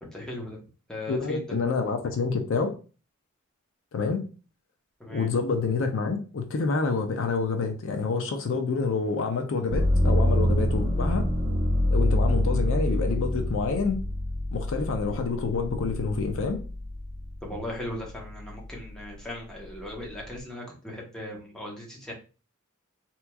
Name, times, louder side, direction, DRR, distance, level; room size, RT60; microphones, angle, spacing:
voice 1, 0.0-0.6 0.9-1.4 5.0-5.3 17.4-22.1, left 1 dB, 5° left, -3 dB, 0.8 m, -38 dB
voice 2, 1.1-2.7 3.9-4.2 5.1-11.2 11.9-14.0 14.5-16.6, left 4 dB, 65° left, 5 dB, 0.4 m, -27 dB
sound 1, 9.7-17.5 18.0-18.8, left 1 dB, 30° right, 0.5 m, -26 dB
3.4 x 2.9 x 2.2 m, 0.35 s
head